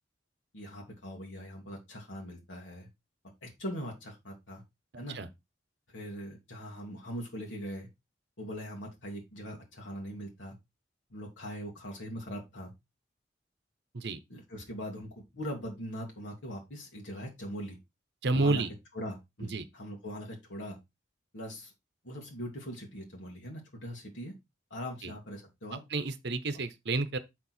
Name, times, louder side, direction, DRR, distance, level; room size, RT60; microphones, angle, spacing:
voice 1, 0.5-2.9 3.4-4.6 5.0-5.2 5.9-7.9 8.4-10.6 11.1-12.7 14.3-17.8 18.3-18.6 18.9-20.8 21.3-21.7 22.0-24.3 24.7-25.8, equal, 85° left, 2.0 m, -41 dB
voice 2, 18.2-18.7 19.5-19.6 25.0-25.1 25.9-27.2, right 3 dB, 60° right, 0.8 m, -30 dB
7.3 x 4.6 x 4.2 m
head